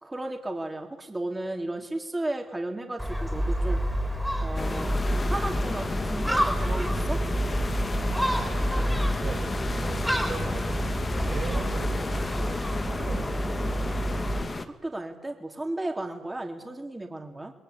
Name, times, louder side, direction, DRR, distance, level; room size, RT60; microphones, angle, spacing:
voice 1, 0.0-3.8 4.4-7.2 14.7-17.5, right 2 dB, 15° right, 3 dB, 3.8 m, -34 dB
Gull seagull, 3.0-14.4, equal, ahead, 4.4 m, -28 dB
sound 1, 4.5-14.6, left 3 dB, 30° left, 1.9 m, -33 dB
voice 2, 8.2-9.4 9.8-10.8 11.2-13.9, right 4 dB, 45° right, -3 dB, 6.3 m, -39 dB
28.5 x 21.0 x 8.6 m, 1.1 s
cardioid pair, 90°, 0 cm